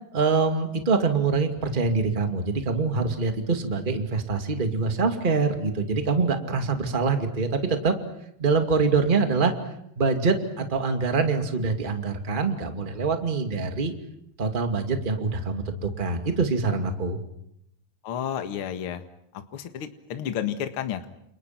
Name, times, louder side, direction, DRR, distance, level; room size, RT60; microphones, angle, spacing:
voice 1, 0.1-7.9 8.4-9.5 9.9-13.9 14.4-17.2, right 4 dB, 20° right, 5 dB, 1.5 m, -24 dB
voice 2, 18.0-19.0 19.3-21.1, left 9 dB, 50° left, 7 dB, 1.7 m, -31 dB
30.0 x 29.0 x 5.9 m, 0.77 s
omnidirectional pair, 4.6 m